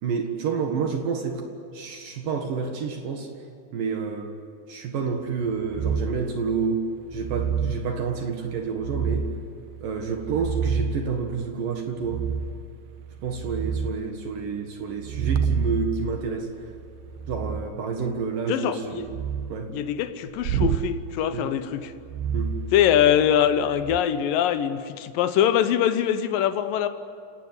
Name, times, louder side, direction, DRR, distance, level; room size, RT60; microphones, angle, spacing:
voice 1, 0.0-1.5 1.7-3.3 3.7-4.3 4.7-9.4 9.8-12.3 13.2-16.7 17.3-19.2 19.5-19.7 21.3-21.5 22.3-22.6, right 5 dB, 60° right, 2.8 m, -29 dB
sound 1, 5.7-6.3 7.1-7.8 8.8-9.5 10.1-11.1 12.0-12.7 13.1-14.0 15.0-17.7 19.0-19.6 20.4-20.9 22.0-23.3 23.7-24.0, right 6 dB, 75° right, 2.7 m, -28 dB
voice 2, 18.5-19.1 19.7-21.9 22.7-26.9, left 10 dB, 75° left, 2.0 m, -23 dB
29.5 x 18.5 x 9.9 m
omnidirectional pair, 5.3 m